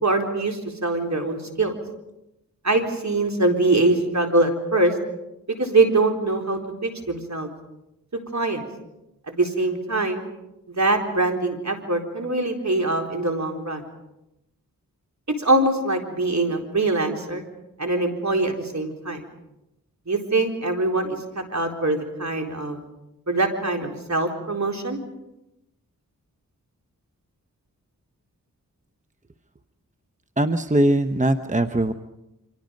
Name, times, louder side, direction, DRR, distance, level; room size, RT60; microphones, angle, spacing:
voice 1, 0.0-1.7 2.6-4.9 5.6-7.5 8.3-8.7 9.3-10.3 10.7-13.8 15.4-17.4 17.8-19.2 20.1-21.2 21.5-22.8 23.3-25.0, right 2 dB, 50° right, 3 dB, 4.1 m, -23 dB
voice 2, 30.4-31.9, right 1 dB, 20° right, 8 dB, 1.0 m, -21 dB
29.0 x 25.0 x 5.3 m, 0.91 s
cardioid pair, 45°, 36 cm